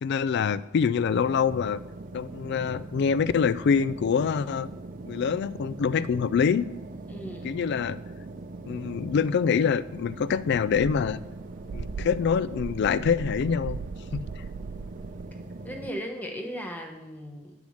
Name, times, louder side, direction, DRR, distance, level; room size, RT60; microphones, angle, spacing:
voice 1, 0.0-1.8 2.1-4.7 5.1-6.7 7.4-8.0 8.7-11.2 11.7-13.8 14.4-14.5, left 6 dB, 55° left, 17 dB, 0.3 m, -25 dB
sound 1, 1.1-15.9, right 2 dB, 40° right, 0.5 m, -41 dB
voice 2, 7.1-7.6 15.6-17.5, equal, 10° left, 2 dB, 1.1 m, -37 dB
sound 2, 10.1-15.3, right 5 dB, 90° right, 0.4 m, -39 dB
7.7 x 7.1 x 6.4 m, 1.0 s
head